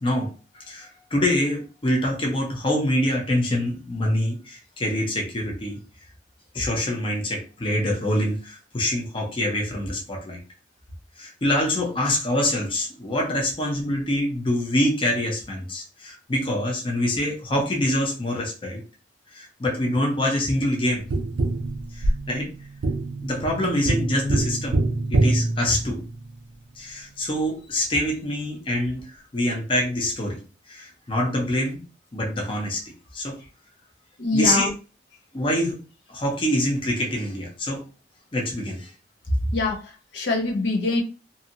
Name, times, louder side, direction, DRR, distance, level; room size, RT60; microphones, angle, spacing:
voice 1, 0.0-5.8 6.5-10.4 11.2-18.8 19.3-21.1 21.9-22.5 23.2-24.8 25.1-26.0 26.8-30.4 30.7-31.8 32.1-32.8 33.1-33.4 34.3-34.7 35.3-35.8 36.1-37.8 38.3-38.9, left 1 dB, 30° left, 0 dB, 0.5 m, -25 dB
Tap, 21.1-26.4 29.0-29.1, right 2 dB, 70° right, 0.5 m, -25 dB
voice 2, 34.2-34.7 39.5-41.0, left 3 dB, 70° left, 0 dB, 0.7 m, -24 dB
2.6 x 2.6 x 2.7 m, 0.33 s
head